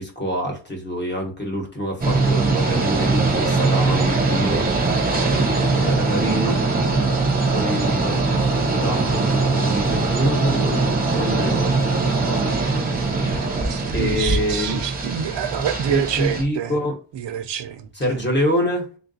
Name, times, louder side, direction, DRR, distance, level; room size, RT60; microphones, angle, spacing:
voice 1, 0.0-5.0 5.5-6.6 7.5-12.5 12.9-13.6 13.9-14.8 15.9-16.9 17.9-18.9, equal, 25° left, 1.1 m, -26 dB
sound 1, 2.0-16.4, right 3 dB, 20° right, 0.7 m, -21 dB
voice 2, 13.6-16.7 17.1-18.1, right 9 dB, 70° right, 0.6 m, -27 dB
3.7 x 2.4 x 3.9 m
wide cardioid pair, 180°, 44 cm